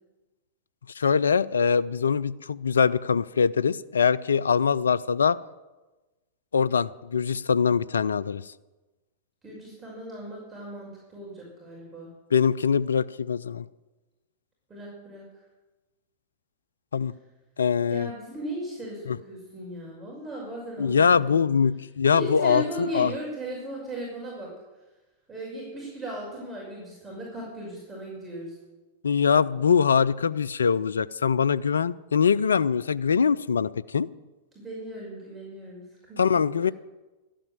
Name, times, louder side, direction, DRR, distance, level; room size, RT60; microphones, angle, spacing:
voice 1, 1.0-5.4 6.5-8.4 12.3-13.7 16.9-17.1 17.6-18.1 19.1-19.2 20.8-23.1 29.0-34.1 36.2-36.7, left 6 dB, 80° left, 19 dB, 0.4 m, -23 dB
voice 2, 9.4-12.1 14.7-15.2 17.9-21.5 22.1-24.5 25.3-28.5 34.5-35.8 36.1-36.5, right 1 dB, 20° right, -5 dB, 5.9 m, -37 dB
13.0 x 8.9 x 9.0 m, 1.1 s
hypercardioid pair, 100°, 0 cm